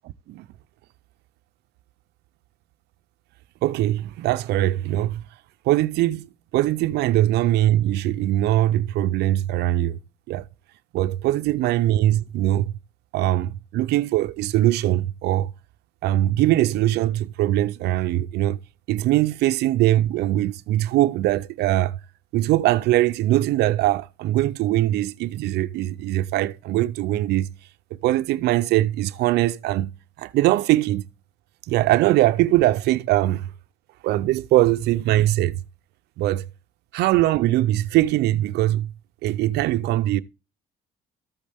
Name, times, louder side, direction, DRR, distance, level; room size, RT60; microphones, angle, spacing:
voice 1, 3.6-5.2 5.6-6.3 6.5-10.0 10.3-10.5 10.9-12.7 13.1-15.5 16.0-18.6 18.9-22.0 22.3-27.5 28.0-29.9 30.2-31.1 31.7-33.5 34.0-35.6 36.2-36.5 36.9-38.9 39.2-40.2, right 15 dB, 80° right, 0.5 m, -21 dB
13.5 x 8.5 x 3.4 m
cardioid pair, 110°, 17 cm